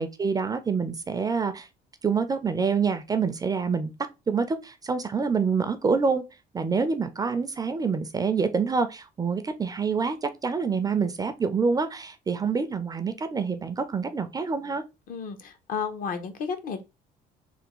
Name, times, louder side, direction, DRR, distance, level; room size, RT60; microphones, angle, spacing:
voice 1, 0.0-1.7 2.0-3.9 4.3-6.2 6.5-14.8, right 5 dB, 20° right, 0.4 m, -26 dB
voice 2, 15.1-16.8, left 6 dB, 55° left, 0.6 m, -32 dB
3.4 x 2.2 x 2.9 m
cardioid pair, 110°, 17 cm